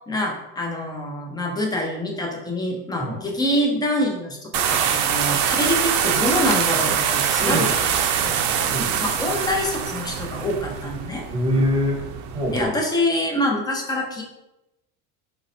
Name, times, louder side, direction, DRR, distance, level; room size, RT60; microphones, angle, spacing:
voice 1, 0.1-7.9 8.2-8.4 9.0-11.2 12.5-14.2, left 1 dB, 10° left, 1 dB, 0.4 m, -25 dB
sound 1, 4.5-12.6, right 8 dB, 55° right, 0.5 m, -24 dB
voice 2, 7.4-7.7 8.6-9.0 11.3-12.0 12.3-12.7, equal, 10° right, -2 dB, 0.9 m, -23 dB
3.9 x 2.1 x 2.6 m, 0.92 s
supercardioid pair, 105°, 45 cm